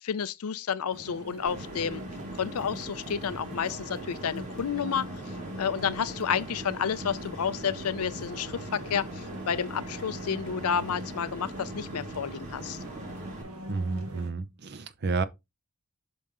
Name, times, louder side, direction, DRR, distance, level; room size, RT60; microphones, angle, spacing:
voice 1, 0.0-2.0 2.4-5.1 5.6-12.8, left 7 dB, 90° left, 0.5 m, -30 dB
sound 1, 0.9-14.3, equal, 80° right, 1.5 m, -43 dB
sound 2, 1.4-13.4, right 1 dB, 35° right, 2.1 m, -41 dB
voice 2, 13.7-15.2, right 4 dB, 50° right, 0.6 m, -30 dB
5.6 x 5.3 x 3.6 m
head